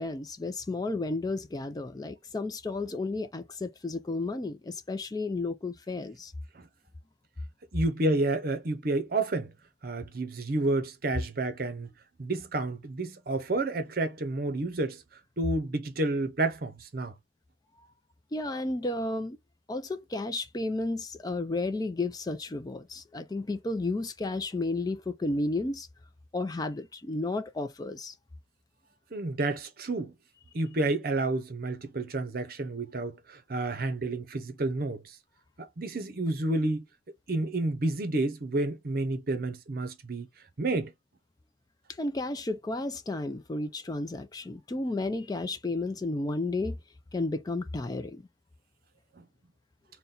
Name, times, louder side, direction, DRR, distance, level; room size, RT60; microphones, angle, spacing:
voice 1, 0.0-6.3 18.3-19.4 19.7-25.9 26.3-28.1 41.9-46.8 47.1-48.2, left 2 dB, 20° left, 0.3 m, -32 dB
voice 2, 7.7-9.5 9.8-11.9 12.2-15.0 15.4-17.1 29.1-30.1 30.5-35.0 35.6-36.8 37.3-40.3 40.6-40.9 49.2-49.3, right 2 dB, 50° right, 0.7 m, -30 dB
4.0 x 2.2 x 3.7 m
head